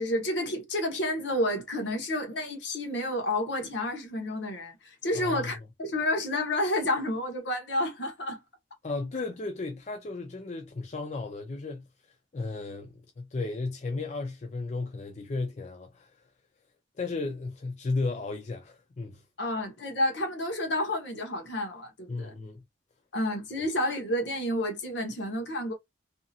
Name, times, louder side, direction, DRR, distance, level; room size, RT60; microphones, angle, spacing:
voice 1, 0.0-8.4 19.4-22.3 23.1-25.7, left 1 dB, 70° left, 1.1 m, -30 dB
voice 2, 5.1-5.5 8.8-11.9 12.3-16.2 17.0-19.2 22.1-22.6, left 3 dB, 40° left, 0.4 m, -34 dB
2.8 x 2.7 x 2.3 m
head